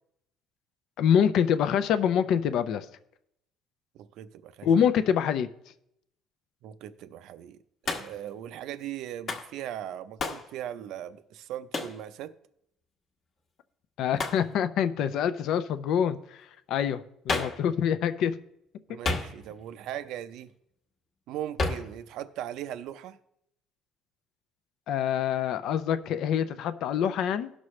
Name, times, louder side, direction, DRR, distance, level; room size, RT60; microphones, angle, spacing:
voice 1, 1.0-2.9 4.6-5.5 14.0-16.2 16.7-18.3 24.9-27.5, left 8 dB, 60° left, 0.5 m, -25 dB
voice 2, 3.9-4.9 6.6-7.6 7.8-12.3 18.9-20.5 21.3-23.2, right 11 dB, 65° right, 0.5 m, -39 dB
Hands, 7.9-8.3 9.3-9.5 10.2-10.5 11.7-12.0 14.2-14.5 17.3-17.7 19.0-19.6 21.6-21.9, left 3 dB, 35° left, 1.1 m, -31 dB
17.5 x 6.2 x 3.2 m
cardioid pair, 165°, 0 cm